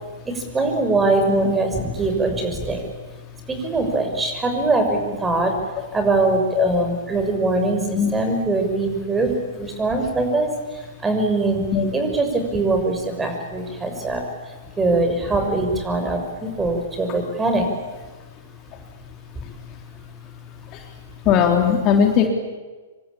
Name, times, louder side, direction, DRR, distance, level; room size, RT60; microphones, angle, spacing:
voice 1, 0.2-5.5 5.9-11.6 11.9-17.7 19.3-19.7 20.0-20.7, right 2 dB, 10° right, 5 dB, 6.3 m, -23 dB
voice 2, 21.3-22.3, left 7 dB, 35° left, 3 dB, 3.5 m, -18 dB
27.0 x 25.0 x 8.7 m, 1.3 s
figure-of-eight pair, 110°, 0 cm